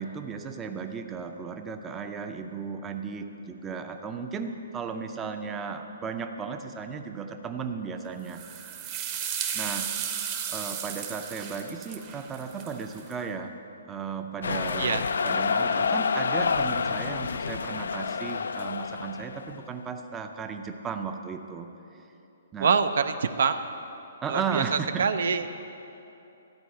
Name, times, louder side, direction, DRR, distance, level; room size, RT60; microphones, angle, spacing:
voice 1, 0.0-8.4 9.5-9.9 10.5-13.6 13.9-22.0 22.5-22.8 24.2-25.1, right 5 dB, 15° right, 6 dB, 0.5 m, -35 dB
sound 1, 8.3-13.1, right 8 dB, 30° right, 0.9 m, -34 dB
sound 2, 14.4-19.6, left 5 dB, 80° left, 0.3 m, -28 dB
voice 2, 22.6-23.6 24.3-24.6 25.0-25.4, right 5 dB, 70° right, 10 dB, 0.5 m, -25 dB
13.0 x 4.6 x 7.7 m, 2.8 s
hypercardioid pair, 150°, 0 cm